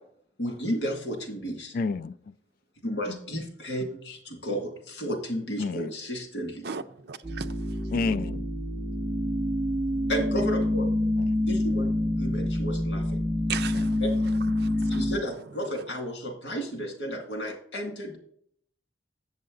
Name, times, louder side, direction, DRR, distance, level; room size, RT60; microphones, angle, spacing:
voice 1, 0.4-1.7 2.8-6.7 10.1-10.9 11.4-11.9 12.2-13.2 14.0-14.1 14.9-18.2, equal, 70° left, 2.4 m, -32 dB
voice 2, 1.7-2.3 5.6-5.9 7.9-8.4 11.2-11.3 13.7-13.9, left 4 dB, 55° left, 0.3 m, -30 dB
voice 3, 6.6-7.5 13.5-14.0 14.6-15.1, right 6 dB, 65° right, 0.6 m, -36 dB
sound 1, 7.2-15.2, left 1 dB, 20° right, 0.7 m, -27 dB
7.7 x 7.3 x 3.9 m
head